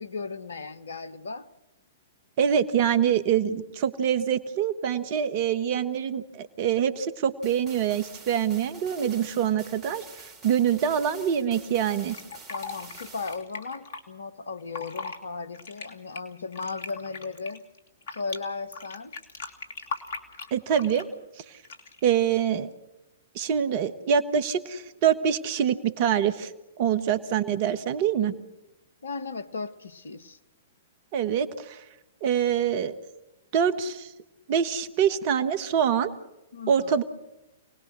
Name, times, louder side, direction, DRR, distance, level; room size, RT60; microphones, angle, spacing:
voice 1, 0.0-1.5 12.5-17.6 18.1-19.2 29.0-30.4 36.5-37.0, left 4 dB, 75° left, 14 dB, 1.2 m, -36 dB
voice 2, 2.4-10.0 10.4-12.2 20.5-21.1 21.4-21.5 22.0-22.7 23.3-26.5 26.8-28.3 31.1-31.8 32.2-32.9 33.5-34.1 34.5-36.1 36.7-37.0, right 8 dB, 45° right, 11 dB, 1.5 m, -25 dB
sound 1, 7.4-13.4, right 4 dB, 25° right, 5.1 m, -47 dB
Fill (with liquid), 12.0-14.0 14.6-15.2 15.5-18.4 18.7-21.1 21.6-22.0, left 4 dB, 60° left, 2.9 m, -38 dB
28.5 x 19.5 x 6.4 m, 0.97 s
figure-of-eight pair, 110°, 0 cm